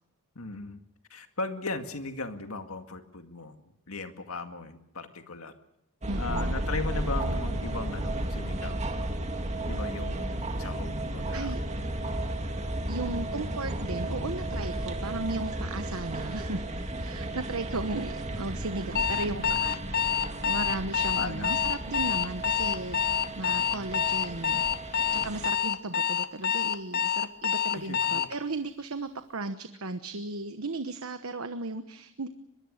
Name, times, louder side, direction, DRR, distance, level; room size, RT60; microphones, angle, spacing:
voice 1, 0.4-0.8 1.1-3.6 3.9-5.5 6.2-8.9 9.7-11.5 19.3-19.6 21.1-21.7 27.7-28.3, left 3 dB, 70° left, 7 dB, 2.1 m, -37 dB
sound 1, 6.0-25.5, right 1 dB, 30° right, 2.1 m, -34 dB
voice 2, 6.1-6.5 11.3-11.6 12.9-16.6 17.0-19.8 20.4-24.6 25.1-32.3, right 2 dB, 75° right, 9 dB, 1.2 m, -35 dB
Alarm, 18.9-28.3, left 8 dB, 45° left, 0.8 m, -27 dB
23.5 x 22.0 x 6.6 m, 0.81 s
head